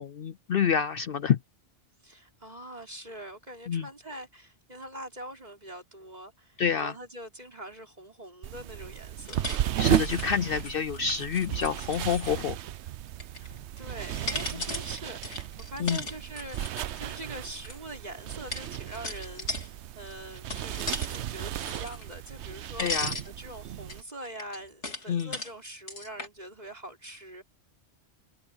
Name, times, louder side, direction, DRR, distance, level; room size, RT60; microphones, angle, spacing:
voice 1, 0.0-1.4 3.7-3.9 6.6-6.9 9.8-12.6 14.5-14.6 15.8-16.0 22.8-23.1 25.1-25.3, left 7 dB, 60° left, 0.7 m, -28 dB
voice 2, 2.0-9.8 13.4-27.4, right 1 dB, 35° right, 4.9 m, -44 dB
sound 1, 8.4-24.0, right 11 dB, 75° right, 0.9 m, -34 dB
sound 2, 9.3-12.5 13.1-13.8 14.1-17.8 18.5-19.7 20.1-21.2 21.5-22.5 22.8-23.3 23.9-25.5 25.9-26.3, left 2 dB, 80° left, 4.2 m, -37 dB
omnidirectional pair, 1.2 m